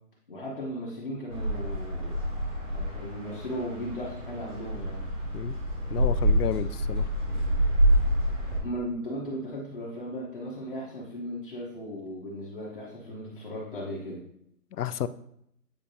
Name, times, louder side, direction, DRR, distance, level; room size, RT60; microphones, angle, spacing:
voice 1, 0.3-2.1 2.7-5.0 8.6-14.2, equal, 35° left, -6 dB, 1.1 m, -36 dB
sound 1, 1.3-8.6, equal, 55° right, 2.2 m, -27 dB
voice 2, 5.9-7.1 14.7-15.1, left 9 dB, 80° left, 14 dB, 0.5 m, -31 dB
8.8 x 4.2 x 2.7 m, 0.74 s
hypercardioid pair, 175°, 45 cm